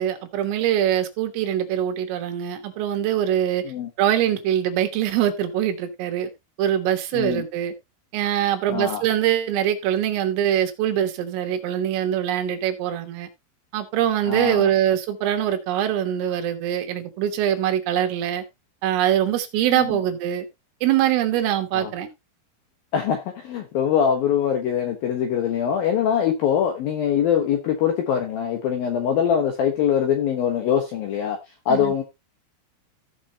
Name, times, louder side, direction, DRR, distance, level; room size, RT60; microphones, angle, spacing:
voice 1, 0.0-3.6 4.0-6.3 6.6-7.7 8.1-13.3 13.7-18.4 18.8-20.5 20.8-22.1 31.7-31.9, right 10 dB, 80° right, 4.0 m, -23 dB
voice 2, 7.1-7.4 8.7-9.0 14.3-14.7 19.7-20.0 21.7-21.9 22.9-31.4 31.7-32.0, left 8 dB, 70° left, 2.3 m, -23 dB
15.5 x 6.1 x 2.8 m
omnidirectional pair, 5.8 m